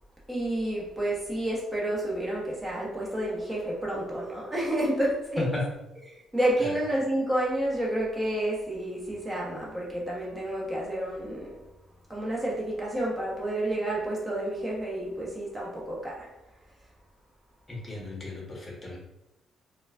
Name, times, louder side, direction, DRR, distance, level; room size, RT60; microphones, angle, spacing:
voice 1, 0.3-5.5 6.1-11.6 12.1-16.3, right 1 dB, 15° right, -5 dB, 1.0 m, -30 dB
voice 2, 17.7-19.0, left 2 dB, 25° left, -2 dB, 1.1 m, -33 dB
3.8 x 2.3 x 2.4 m, 0.93 s
cardioid pair, 90°, 0 cm